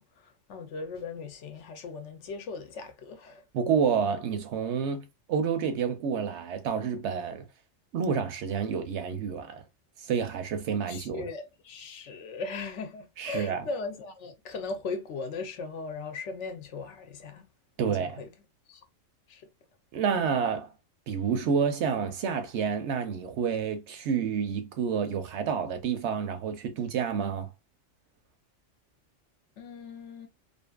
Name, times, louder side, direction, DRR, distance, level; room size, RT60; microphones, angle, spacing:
voice 1, 0.0-3.5 10.9-17.5 17.8-18.3 18.7-18.8 19.3-19.4 29.6-30.3, left 4 dB, 70° left, 0.9 m, -38 dB
voice 2, 3.5-7.5 7.9-9.6 10.0-11.2 13.2-13.6 17.8-18.2 19.9-20.7 21.1-27.5, right 6 dB, 70° right, 0.8 m, -29 dB
2.6 x 2.5 x 2.3 m
omnidirectional pair, 1.3 m